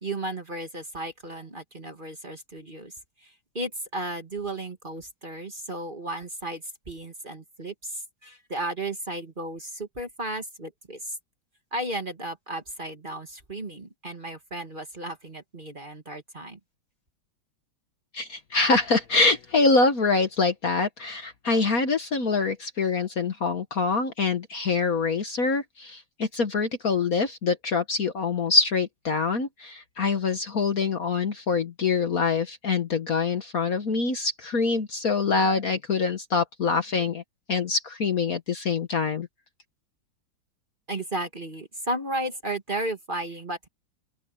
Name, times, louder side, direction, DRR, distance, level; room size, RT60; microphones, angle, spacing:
voice 1, 0.0-2.9 3.2-11.2 11.7-16.6 40.9-43.7, right 1 dB, 25° right, 1.9 m, -34 dB
voice 2, 18.1-37.2 37.5-39.3, left 4 dB, 50° left, 1.6 m, -25 dB
open air
omnidirectional pair, 2.2 m